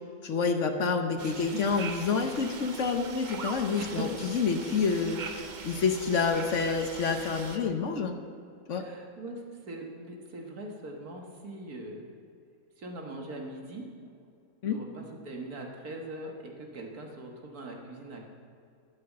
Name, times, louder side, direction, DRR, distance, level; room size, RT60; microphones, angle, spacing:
voice 1, 0.2-8.1 8.7-8.9 14.6-14.8, left 5 dB, 60° left, 7 dB, 1.1 m, -28 dB
sound 1, 1.2-7.6, right 5 dB, 45° right, 0.7 m, -42 dB
voice 2, 1.2-1.6 3.7-4.1 8.8-12.1 12.8-13.9 14.6-18.2, right 1 dB, 80° right, 1 dB, 2.1 m, -41 dB
12.0 x 8.6 x 7.4 m, 2.3 s
omnidirectional pair, 1.6 m